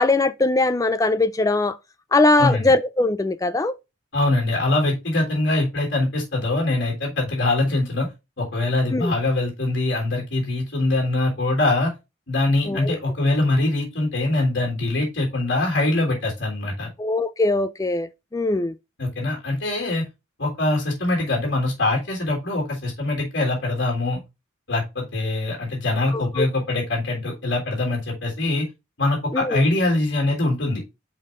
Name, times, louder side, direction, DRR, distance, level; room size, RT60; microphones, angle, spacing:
voice 1, 0.0-1.7 2.1-3.7 8.9-9.1 12.7-12.9 17.0-18.7 26.1-26.5 29.3-29.6, left 2 dB, 15° left, 0.4 m, -21 dB
voice 2, 2.4-2.7 4.1-8.1 8.4-11.9 12.3-16.9 19.0-20.0 20.4-24.2 24.7-28.7 29.0-30.8, left 2 dB, 70° left, 3.4 m, -23 dB
5.6 x 5.4 x 3.7 m
head